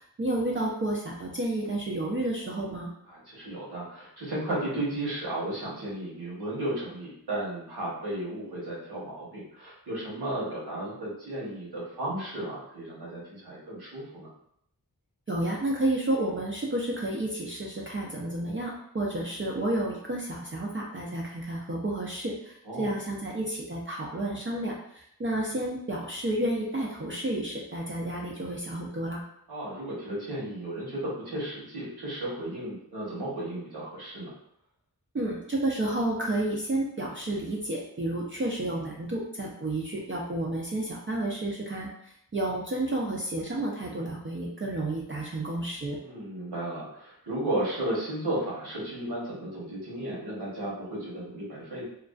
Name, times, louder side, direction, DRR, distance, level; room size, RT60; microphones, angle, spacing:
voice 1, 0.0-2.9 15.3-29.2 35.1-46.0, right 1 dB, 35° right, -3 dB, 0.4 m, -31 dB
voice 2, 3.1-14.3 22.6-22.9 29.5-34.3 46.0-51.8, right 1 dB, 80° right, -6 dB, 1.0 m, -34 dB
2.4 x 2.2 x 2.3 m, 0.72 s
wide cardioid pair, 70°, 38 cm